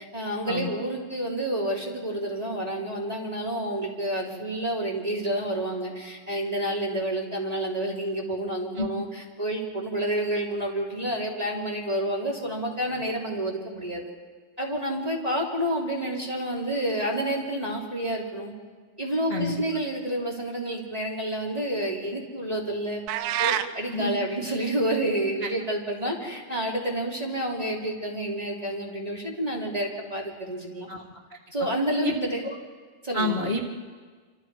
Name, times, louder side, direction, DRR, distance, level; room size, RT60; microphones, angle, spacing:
voice 1, 0.0-14.0 14.6-18.5 19.0-23.0 23.4-30.9 31.5-32.4 33.0-33.4, right 1 dB, 10° right, -3 dB, 2.5 m, -29 dB
sound 1, 23.1-23.7, right 11 dB, 75° right, 2.3 m, -26 dB
voice 2, 33.1-33.6, left 2 dB, 90° left, -3 dB, 0.5 m, -28 dB
27.5 x 26.5 x 4.8 m, 1.5 s
omnidirectional pair, 4.4 m